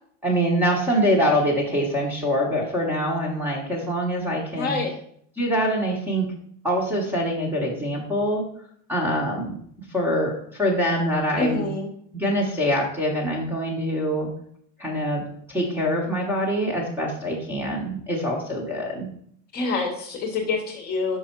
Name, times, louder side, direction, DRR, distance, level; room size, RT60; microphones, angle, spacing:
voice 1, 0.2-4.8 5.4-6.3 6.6-8.4 8.9-9.6 9.9-11.7 12.1-14.3 14.8-19.1, equal, 5° right, -2 dB, 0.9 m, -24 dB
voice 2, 4.6-4.9 11.4-11.9 19.5-21.2, left 3 dB, 25° left, 3 dB, 1.0 m, -26 dB
5.4 x 4.8 x 4.4 m, 0.64 s
supercardioid pair, 165°, 37 cm